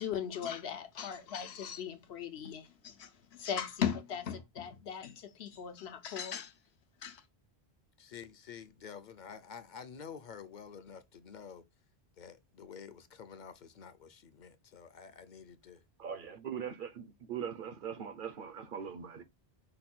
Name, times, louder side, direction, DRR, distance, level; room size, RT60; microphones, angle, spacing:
voice 1, 0.0-6.5 7.0-7.2, left 8 dB, 85° left, 1.0 m, -38 dB
voice 2, 8.0-11.6 12.2-15.8, left 7 dB, 55° left, 0.7 m, -49 dB
voice 3, 16.0-19.2, right 7 dB, 60° right, 0.8 m, -41 dB
5.4 x 2.2 x 4.2 m
omnidirectional pair, 1.0 m